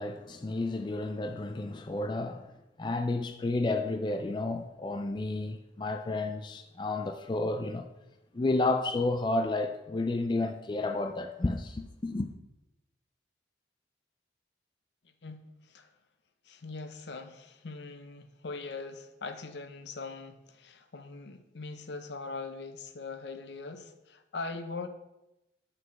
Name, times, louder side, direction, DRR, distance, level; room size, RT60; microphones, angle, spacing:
voice 1, 0.0-2.5 2.8-7.9 8.3-12.3, left 2 dB, 25° left, 0.3 m, -31 dB
voice 2, 15.2-15.9 16.4-24.9, left 3 dB, 75° left, 0.7 m, -41 dB
5.9 x 4.8 x 6.2 m
head